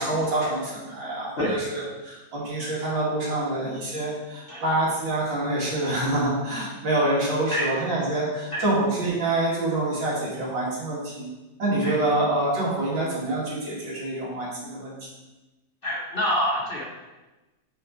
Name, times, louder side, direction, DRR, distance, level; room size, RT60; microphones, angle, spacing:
voice 1, 0.0-11.3 11.6-14.9, right 2 dB, 90° right, -6 dB, 2.8 m, -26 dB
voice 2, 15.8-16.8, left 1 dB, 40° left, -4 dB, 0.9 m, -26 dB
6.3 x 5.9 x 3.9 m, 1.1 s
omnidirectional pair, 2.0 m